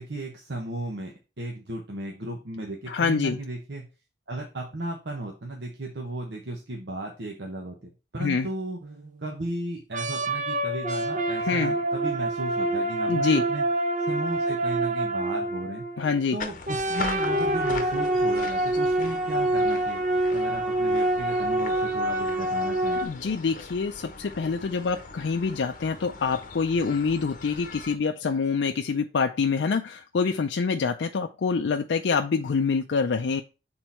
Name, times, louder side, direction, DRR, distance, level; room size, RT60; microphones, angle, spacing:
voice 1, 0.0-3.9 4.3-8.8 9.2-13.6 14.1-15.9 16.3-20.0 20.3-23.0, right 2 dB, 80° right, 1 dB, 1.1 m, -35 dB
voice 2, 2.9-3.4 8.2-8.5 11.4-11.8 13.1-13.4 16.0-16.4 23.0-33.4, left 5 dB, 90° left, 5 dB, 0.4 m, -26 dB
sound 1, 8.8-9.2 9.9-16.2 16.7-23.0, right 1 dB, 45° right, 0.8 m, -26 dB
sound 2, 16.4-28.0, left 4 dB, 50° left, 0.8 m, -40 dB
6.2 x 3.9 x 4.4 m, 0.30 s
head